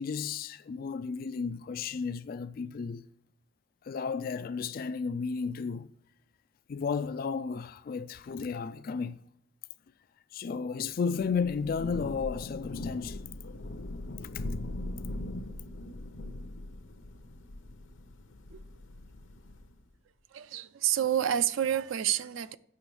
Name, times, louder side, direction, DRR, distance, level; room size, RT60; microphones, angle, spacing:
voice 1, 0.0-3.1 3.8-5.9 6.7-9.2 10.3-13.3 14.3-14.5, left 5 dB, 50° left, 0.3 m, -33 dB
Thunder / Rain, 11.3-19.8, left 1 dB, 85° left, 0.7 m, -40 dB
voice 2, 20.3-22.6, right 10 dB, 80° right, 0.4 m, -29 dB
8.3 x 6.1 x 4.8 m
head